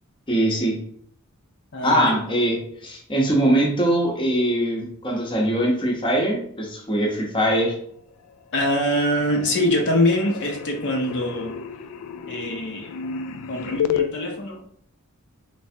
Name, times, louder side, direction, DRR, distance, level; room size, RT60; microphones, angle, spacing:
voice 1, 0.3-0.8 1.8-7.8, right 1 dB, 25° left, -1 dB, 0.8 m, -22 dB
voice 2, 1.7-2.2 8.5-11.6 12.3-12.9 13.5-14.6, left 1 dB, 55° left, 1 dB, 0.7 m, -23 dB
sound 1, 8.1-8.6 8.9-14.1, left 8 dB, 80° left, 0.3 m, -31 dB
3.3 x 3.2 x 2.7 m, 0.63 s
head